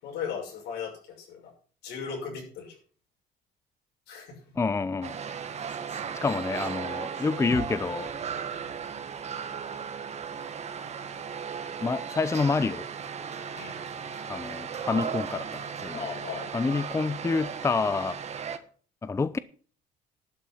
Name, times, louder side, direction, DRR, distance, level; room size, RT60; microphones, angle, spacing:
voice 1, 0.0-1.5 1.8-2.7 4.1-4.4 5.9-6.0 13.5-13.8 15.9-16.5, left 6 dB, 80° left, 6.4 m, -37 dB
voice 2, 4.6-5.2 6.1-8.1 11.8-12.9 14.3-16.0 16.5-18.2 19.0-19.4, left 4 dB, 15° left, 0.5 m, -28 dB
sound 1, 5.0-18.6, right 7 dB, 40° right, 1.4 m, -36 dB
sound 2, 7.5-11.5 11.8-11.9, left 7 dB, 45° left, 1.4 m, -45 dB
11.5 x 6.2 x 8.4 m
cardioid pair, 110°, 17 cm